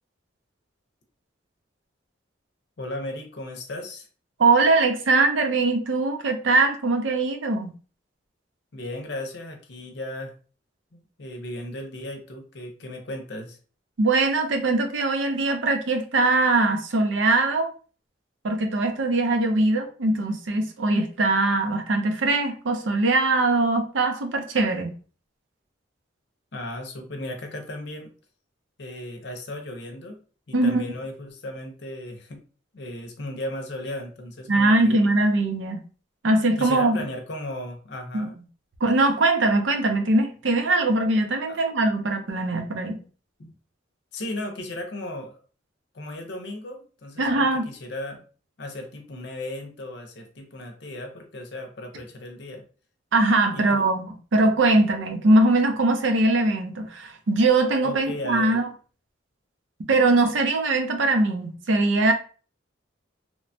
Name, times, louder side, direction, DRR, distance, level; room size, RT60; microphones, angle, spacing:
voice 1, 2.8-4.1 8.7-10.3 10.9-13.6 26.5-28.1 28.8-30.2 30.5-32.4 32.7-35.0 36.6-38.4 41.5-41.6 43.4-43.5 44.1-45.4 45.9-48.2 48.6-52.6 53.5-53.9 57.8-58.6, left 1 dB, 60° left, 0.6 m, -36 dB
voice 2, 4.4-7.7 14.0-17.7 18.4-24.9 30.5-30.8 34.5-35.8 36.2-37.0 38.1-38.3 38.8-43.0 47.2-47.7 53.1-58.7 59.9-62.1, right 2 dB, 75° right, 0.5 m, -21 dB
3.0 x 2.1 x 2.6 m
head